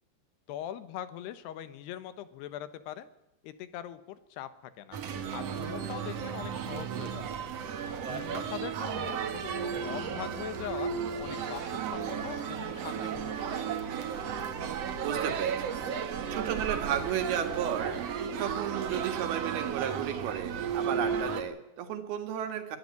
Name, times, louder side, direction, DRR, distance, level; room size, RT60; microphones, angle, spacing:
voice 1, 0.5-3.1 3.4-5.0 5.3-7.5 8.1-10.9 11.2-13.7, left 11 dB, 85° left, 13 dB, 3.3 m, -42 dB
sound 1, 4.9-21.4, right 7 dB, 55° right, 2.0 m, -34 dB
sound 2, 11.3-11.8 12.2-12.5 12.9-14.6 15.0-16.1 16.6-17.5 17.9-18.1, right 1 dB, 20° right, 4.9 m, -54 dB
voice 2, 15.0-22.8, right 9 dB, 70° right, 7 dB, 3.7 m, -34 dB
23.0 x 12.0 x 9.7 m, 0.91 s
omnidirectional pair, 4.7 m